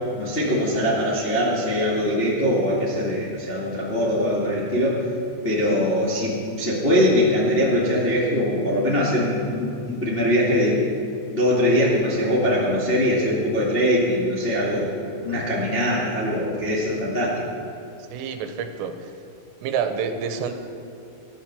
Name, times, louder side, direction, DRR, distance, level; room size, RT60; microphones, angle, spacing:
voice 1, 0.2-5.0 5.4-10.8 11.2-14.9 15.2-17.4, equal, 80° left, -6 dB, 0.5 m, -22 dB
voice 2, 18.1-19.1 19.6-20.5, right 6 dB, 85° right, 7 dB, 3.6 m, -28 dB
13.0 x 11.5 x 7.5 m, 2.7 s
omnidirectional pair, 5.7 m